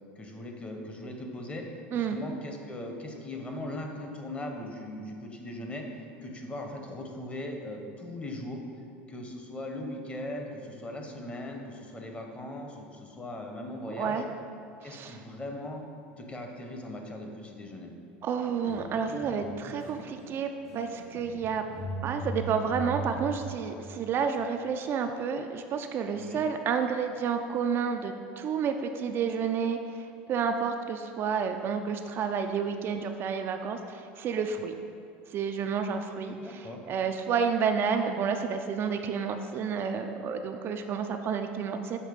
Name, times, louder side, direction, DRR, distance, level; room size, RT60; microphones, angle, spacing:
voice 1, 0.2-1.6 1.9-8.6 9.1-14.2 14.8-15.8 16.2-17.9 26.1-26.4 36.3-36.8, left 1 dB, 20° left, 2 dB, 0.8 m, -39 dB
voice 2, 13.9-14.2 14.8-15.2 18.2-21.6 22.0-34.7 35.3-42.0, right 6 dB, 45° right, 5 dB, 0.3 m, -30 dB
sound 1, 18.6-20.4 20.7-23.5, right 1 dB, 50° left, 0.9 m, -39 dB
6.6 x 3.1 x 5.0 m, 2.5 s
supercardioid pair, 100°, 6 cm